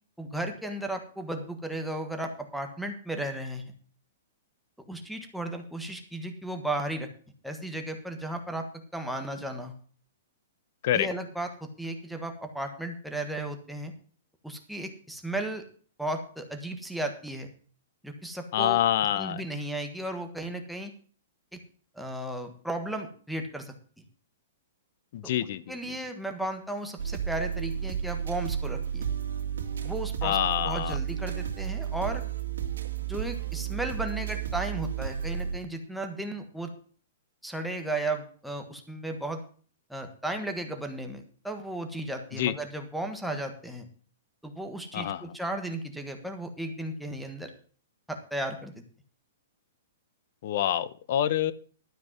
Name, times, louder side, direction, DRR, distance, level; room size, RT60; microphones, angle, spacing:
voice 1, 0.2-3.7 4.9-7.1 7.4-8.7 8.9-9.8 10.9-13.9 14.4-15.6 16.0-17.5 18.0-18.8 19.1-20.9 21.5-21.6 21.9-23.7 25.7-29.1 29.8-30.4 30.6-32.2 33.1-36.7 37.4-39.4 39.9-43.9 44.4-47.5 48.1-48.8, right 1 dB, ahead, 4 dB, 1.4 m, -35 dB
voice 2, 18.5-19.4 25.1-26.0 30.2-31.0 42.3-42.6 44.9-45.3 50.4-51.5, left 11 dB, 50° left, 17 dB, 0.9 m, -27 dB
sound 1, 27.0-35.6, right 9 dB, 85° right, 2.4 m, -32 dB
12.5 x 5.3 x 7.4 m, 0.42 s
hypercardioid pair, 160°, 0 cm